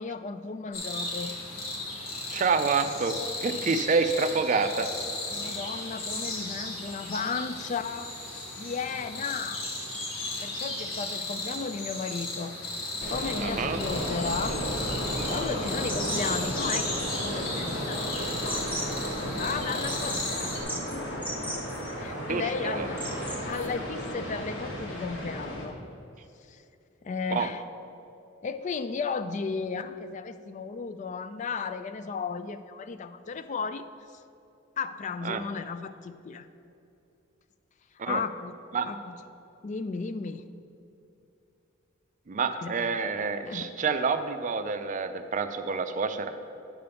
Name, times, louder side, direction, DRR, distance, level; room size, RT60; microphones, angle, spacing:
voice 1, 0.0-1.3 5.3-8.2 8.6-9.6 10.4-12.6 13.1-14.6 15.3-18.9 19.2-21.2 22.0-23.0 23.5-25.8 26.5-26.6 27.0-27.6 28.4-33.8 34.8-36.5 38.1-38.6 38.9-39.2 39.6-40.4 42.6-42.9 43.5-43.7, left 5 dB, 40° left, 12 dB, 0.3 m, -34 dB
sound 1, 0.7-20.6, left 2 dB, 80° left, 1.5 m, -35 dB
voice 2, 2.3-4.9 13.4-13.8 22.3-22.9 27.3-27.5 35.2-35.4 38.0-38.2 38.7-38.9 42.3-46.3, right 4 dB, 40° right, 8 dB, 0.4 m, -28 dB
sound 2, 13.0-25.7, equal, 60° left, 1.5 m, -34 dB
sound 3, 15.9-23.7, equal, 5° left, 0.8 m, -39 dB
9.9 x 3.4 x 6.8 m, 2.7 s
head